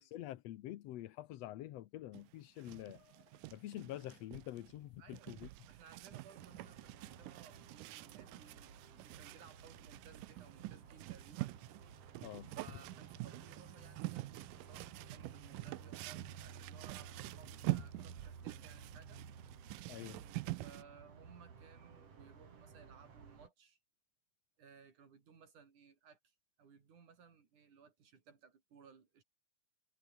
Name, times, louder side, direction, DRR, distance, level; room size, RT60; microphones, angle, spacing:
voice 1, 0.0-5.5 12.2-12.5 19.9-20.3, left 14 dB, 70° left, 1.6 m, -47 dB
sound 1, 2.1-20.8, right 19 dB, 80° right, 2.3 m, -46 dB
voice 2, 5.0-5.4 5.7-11.6 12.5-19.2 20.6-23.8 24.6-29.2, right 6 dB, 65° right, 5.1 m, -61 dB
sound 2, 6.3-23.5, right 6 dB, 45° right, 3.9 m, -55 dB
omnidirectional pair, 3.9 m